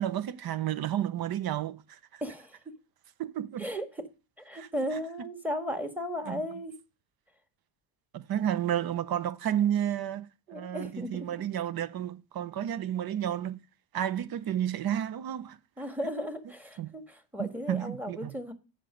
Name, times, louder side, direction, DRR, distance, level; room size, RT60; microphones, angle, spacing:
voice 1, 0.0-2.2 3.2-3.7 4.5-5.0 6.3-6.4 8.1-13.6 13.9-15.6 16.8-17.0 17.4-18.3, right 10 dB, 55° right, 0.8 m, -31 dB
voice 2, 2.2-2.6 3.6-3.9 4.4-6.7 10.5-11.4 15.8-18.5, equal, 5° right, 1.6 m, -35 dB
7.5 x 5.4 x 6.2 m
supercardioid pair, 70°, 44 cm